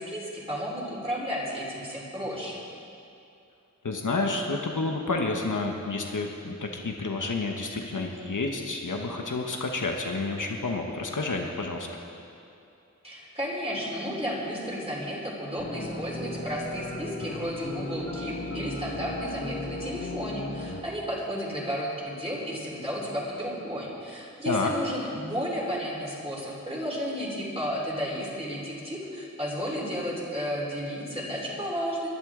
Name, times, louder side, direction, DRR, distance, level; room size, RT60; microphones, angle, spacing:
voice 1, 0.0-2.6 13.0-32.1, equal, 20° right, -5 dB, 3.9 m, -33 dB
voice 2, 3.8-11.9 24.4-24.7, left 3 dB, 90° left, 2 dB, 1.1 m, -30 dB
sound 1, 15.6-20.8, left 1 dB, 60° left, 1.9 m, -36 dB
22.5 x 11.0 x 3.7 m, 2.6 s
wide cardioid pair, 55°, 30 cm